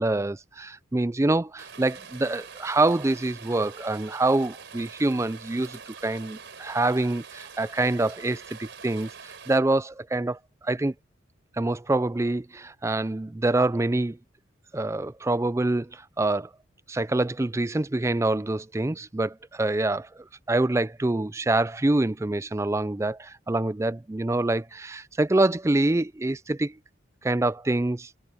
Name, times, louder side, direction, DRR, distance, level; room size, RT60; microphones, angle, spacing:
voice 1, 0.0-10.9 11.5-14.2 14.7-16.5 16.9-20.1 20.5-26.8 27.2-28.1, right 2 dB, 15° right, 0.4 m, -26 dB
Rain, 1.6-9.6, right 6 dB, 65° right, 4.4 m, -45 dB
head